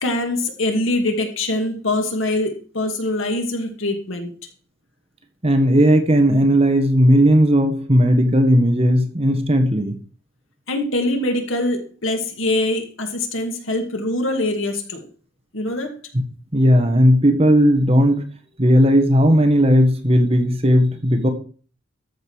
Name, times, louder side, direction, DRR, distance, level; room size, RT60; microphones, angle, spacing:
voice 1, 0.0-4.3 10.7-15.0 15.5-15.9, left 1 dB, 75° left, 4 dB, 2.3 m, -23 dB
voice 2, 5.4-9.9 16.5-18.2 18.6-21.3, equal, 30° right, 6 dB, 1.5 m, -15 dB
13.5 x 5.2 x 6.5 m, 0.40 s
head